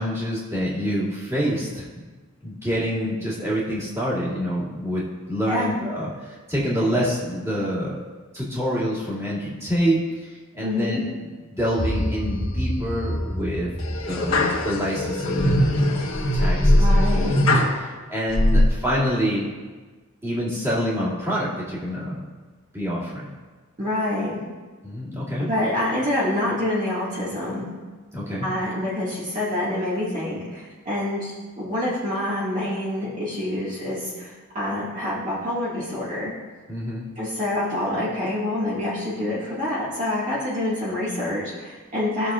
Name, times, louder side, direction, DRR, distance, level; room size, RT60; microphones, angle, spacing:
voice 1, 0.0-1.9 2.4-8.0 8.3-11.0 11.5-17.0 17.8-19.5 20.2-22.2 22.7-23.3 24.8-25.5 28.1-28.5 36.7-37.0, equal, 15° right, -10 dB, 2.5 m, -27 dB
voice 2, 10.6-11.1 16.8-17.5 23.8-24.4 25.4-27.7 28.4-36.3 37.2-42.3, left 1 dB, 35° right, -9 dB, 2.0 m, -26 dB
sound 1, 11.6-12.3 12.8-13.2 13.8-17.8 18.3-18.6, left 1 dB, 75° left, 1.3 m, -20 dB
sound 2, 11.8-16.1, equal, 5° left, 0.3 m, -29 dB
16.5 x 6.7 x 2.5 m, 1.4 s
head